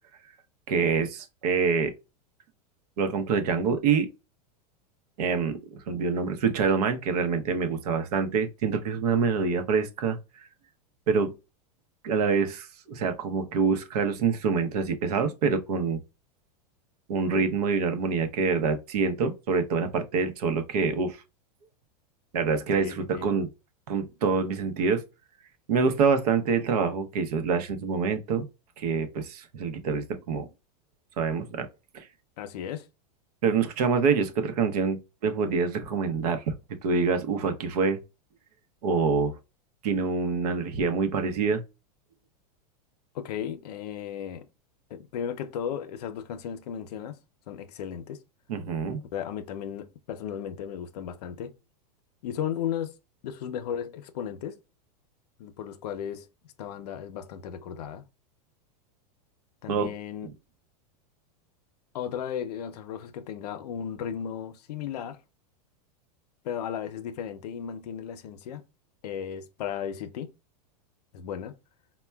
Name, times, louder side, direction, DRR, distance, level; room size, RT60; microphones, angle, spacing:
voice 1, 0.7-1.9 3.0-4.1 5.2-10.2 11.1-11.3 12.0-16.0 17.1-21.2 22.3-23.5 23.9-25.0 25.7-28.5 28.8-30.5 31.2-31.7 31.9-32.0 33.4-36.4 36.8-38.0 38.8-39.4 39.8-41.6 48.5-49.0 59.7-59.9, right 5 dB, 70° right, 0.7 m, -26 dB
voice 2, 22.8-23.3 32.4-32.9 43.1-44.5 44.9-47.2 47.5-48.2 49.1-51.5 52.2-53.0 53.2-54.6 55.4-56.3 56.6-58.0 59.6-60.3 61.9-65.2 66.4-68.6 69.0-70.3 71.1-71.5, left 9 dB, 75° left, 0.6 m, -35 dB
4.3 x 2.2 x 2.2 m
supercardioid pair, 160°, 20 cm